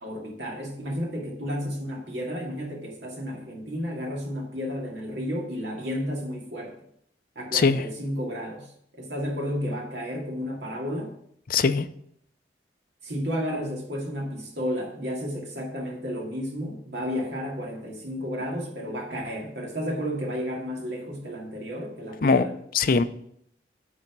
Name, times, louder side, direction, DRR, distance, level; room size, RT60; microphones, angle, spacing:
voice 1, 0.0-6.8 7.4-11.1 13.0-22.6, equal, 75° right, 0 dB, 2.1 m, -32 dB
voice 2, 11.5-11.9 22.2-22.5 22.7-23.0, left 4 dB, 50° left, 11 dB, 0.5 m, -20 dB
9.7 x 4.0 x 6.0 m, 0.70 s
head